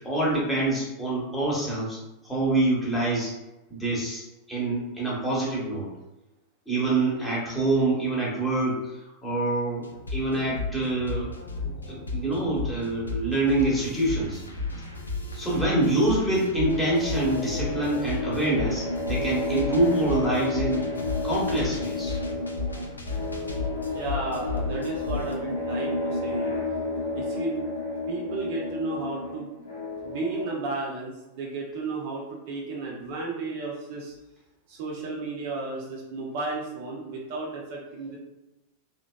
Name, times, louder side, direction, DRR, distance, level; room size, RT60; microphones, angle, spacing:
voice 1, 0.0-2.0 2.2-3.3 3.7-5.9 6.7-8.8 9.2-11.3 11.6-14.4 15.3-20.8 21.2-22.2, right 2 dB, 5° left, -6 dB, 0.9 m, -26 dB
sound 1, 9.8-25.3, left 3 dB, 80° left, 0.3 m, -34 dB
sound 2, 16.6-30.5, left 2 dB, 65° left, 0.7 m, -31 dB
voice 2, 23.9-26.6 27.1-27.7 28.1-29.5 30.0-34.1 34.7-38.2, right 3 dB, 50° right, -2 dB, 0.4 m, -33 dB
2.7 x 2.1 x 2.2 m, 0.99 s
figure-of-eight pair, 90°, 0 cm